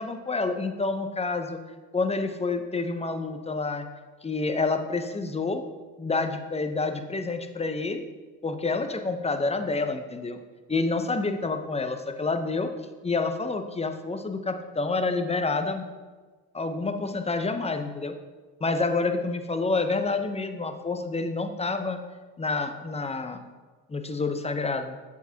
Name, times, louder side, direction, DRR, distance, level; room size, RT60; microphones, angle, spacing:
voice 1, 0.0-1.6 1.9-3.9 4.2-5.6 6.0-8.0 8.4-10.4 10.7-12.7 13.0-15.9 16.5-18.2 18.6-22.0 22.4-23.4 23.9-24.9, left 3 dB, 15° left, 7 dB, 0.8 m, -28 dB
8.2 x 7.1 x 2.8 m, 1.3 s
hypercardioid pair, 60°, 49 cm